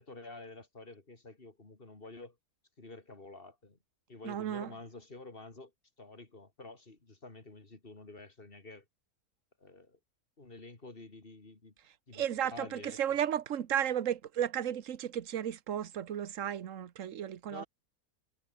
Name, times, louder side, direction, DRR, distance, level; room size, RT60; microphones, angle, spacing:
voice 1, 0.0-2.4 2.8-3.8 4.1-5.7 6.0-8.8 9.6-10.0 10.4-11.7 12.1-13.2 17.5-17.7, left 2 dB, 40° left, 3.2 m, -49 dB
voice 2, 4.2-4.7 12.1-17.6, right 10 dB, 65° right, 1.4 m, -34 dB
omnidirectional pair, 1.5 m